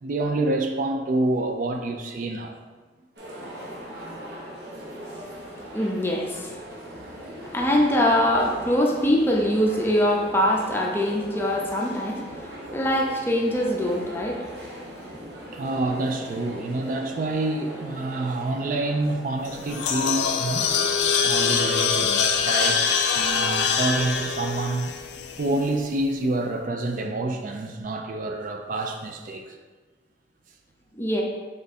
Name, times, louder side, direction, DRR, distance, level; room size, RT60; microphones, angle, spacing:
voice 1, 0.0-2.6 15.5-20.7 21.2-24.9 25.4-29.6, right 2 dB, 50° right, 4 dB, 0.4 m, -27 dB
sound 1, 3.2-21.7, equal, 65° right, 1.0 m, -40 dB
voice 2, 5.7-6.6 7.5-14.5 14.9-15.3 30.9-31.2, equal, 15° left, -1 dB, 0.6 m, -23 dB
sound 2, 19.5-25.7, left 6 dB, 75° left, 0.4 m, -24 dB
3.7 x 3.5 x 4.1 m, 1.3 s
head